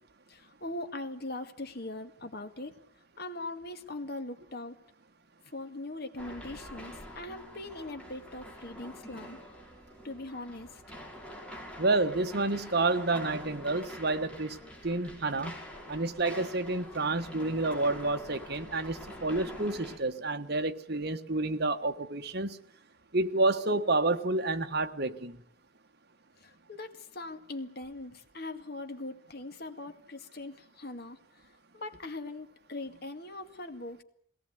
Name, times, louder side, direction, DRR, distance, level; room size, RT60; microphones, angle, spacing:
voice 1, 0.3-2.8 3.2-4.8 5.5-9.4 10.0-10.8 26.4-31.2 31.7-34.0, left 2 dB, 50° left, 7 dB, 2.1 m, -41 dB
sound 1, 6.2-20.0, equal, 5° left, 5.3 m, -46 dB
voice 2, 11.8-15.5 15.9-22.6 23.1-25.4, right 2 dB, 50° right, 7 dB, 1.4 m, -29 dB
22.0 x 18.0 x 9.5 m, 0.66 s
head